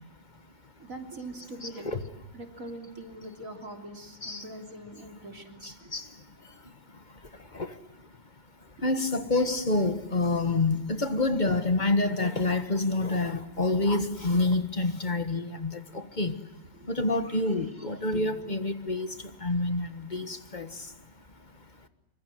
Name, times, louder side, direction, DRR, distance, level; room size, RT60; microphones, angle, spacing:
voice 1, 0.8-1.9 2.3-5.9 8.8-8.9 9.5-9.6 16.7-18.3 20.1-20.2, right 1 dB, 45° right, 3.6 m, -43 dB
voice 2, 1.6-2.0 4.2-4.4 5.9-6.1 7.5-7.7 8.8-16.3 16.9-19.1 19.4-20.7, left 2 dB, 25° left, 1.4 m, -27 dB
25.5 x 25.5 x 7.8 m
omnidirectional pair, 2.1 m